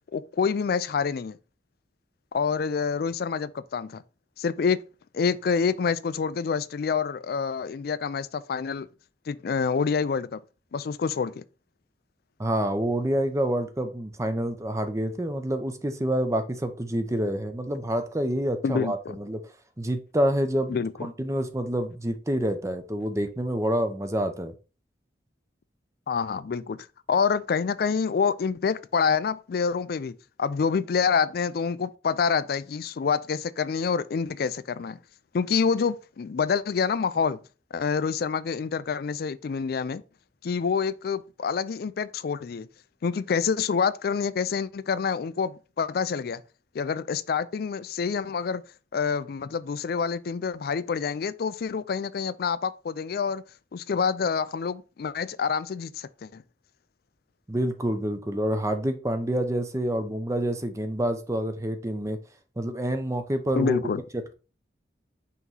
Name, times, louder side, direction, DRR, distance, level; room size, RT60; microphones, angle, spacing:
voice 1, 0.1-1.4 2.3-4.0 4.4-4.8 5.1-8.9 9.3-10.4 10.7-11.4 18.6-19.1 20.7-21.1 26.1-35.0 35.3-37.4 37.7-40.0 40.4-42.7 43.0-46.4 46.7-48.6 48.9-53.4 53.7-56.4 63.5-64.0, left 6 dB, 60° left, 0.4 m, -27 dB
voice 2, 12.4-19.4 19.8-24.5 57.5-62.2 62.6-63.8 64.1-64.3, right 1 dB, 15° right, 0.7 m, -27 dB
5.7 x 3.1 x 5.5 m
head